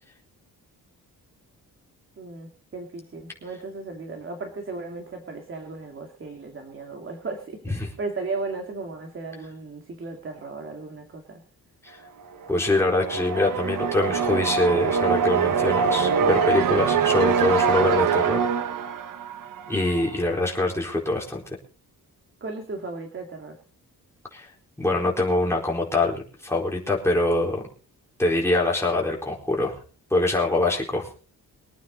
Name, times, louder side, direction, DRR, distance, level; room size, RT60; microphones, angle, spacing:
voice 1, 2.2-11.4 22.4-23.6, right 3 dB, 35° right, 3 dB, 2.4 m, -35 dB
sound 1, 12.4-20.2, right 6 dB, 65° right, 1.1 m, -24 dB
voice 2, 12.5-18.5 19.7-21.4 24.3-24.5 24.8-27.6 28.2-29.8 30.1-31.1, left 2 dB, 5° left, -2 dB, 4.3 m, -24 dB
24.0 x 9.4 x 4.0 m, 0.38 s
wide cardioid pair, 165°, 36 cm